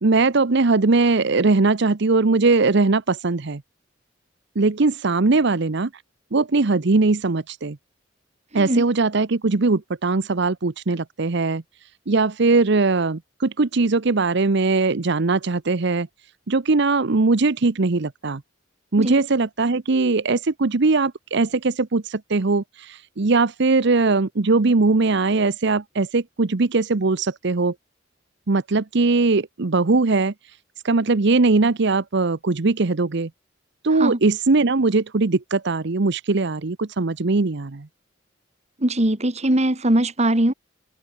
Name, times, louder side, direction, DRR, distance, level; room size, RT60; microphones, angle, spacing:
voice 1, 0.0-3.6 4.6-6.0 6.3-7.8 8.5-11.6 12.1-16.1 16.5-18.4 18.9-27.7 28.5-30.6 30.8-33.3 33.8-37.9, right 3 dB, 65° right, 0.8 m, -20 dB
voice 2, 8.5-8.8 19.0-19.2 34.0-34.2 38.8-40.5, right 1 dB, 35° right, 2.5 m, -21 dB
open air
head